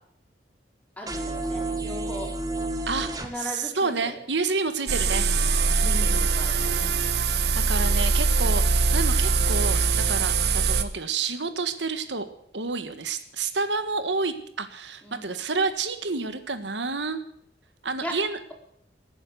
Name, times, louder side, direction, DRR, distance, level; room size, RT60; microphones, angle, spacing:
voice 1, 1.0-2.3 3.2-4.2 5.8-7.0 15.0-15.4 18.0-18.1, equal, 10° left, 0 dB, 4.5 m, -38 dB
sound 1, 1.1-3.3, right 2 dB, 20° right, 1.7 m, -30 dB
voice 2, 3.4-5.3 5.8-6.3 7.7-12.3 12.5-17.2 17.8-18.4, right 4 dB, 80° right, 10 dB, 1.5 m, -29 dB
sound 2, 4.9-10.8, right 4 dB, 65° right, 1.2 m, -22 dB
18.5 x 9.8 x 8.0 m, 0.68 s
head